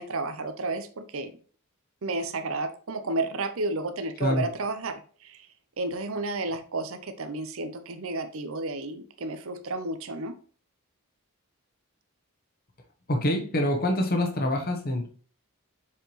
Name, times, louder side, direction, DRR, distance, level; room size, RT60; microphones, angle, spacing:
voice 1, 0.0-1.3 2.0-5.5 5.8-10.3, right 2 dB, 70° right, 9 dB, 0.7 m, -32 dB
voice 2, 13.1-15.1, left 1 dB, 40° left, 3 dB, 1.0 m, -25 dB
7.3 x 4.5 x 3.2 m, 0.41 s
head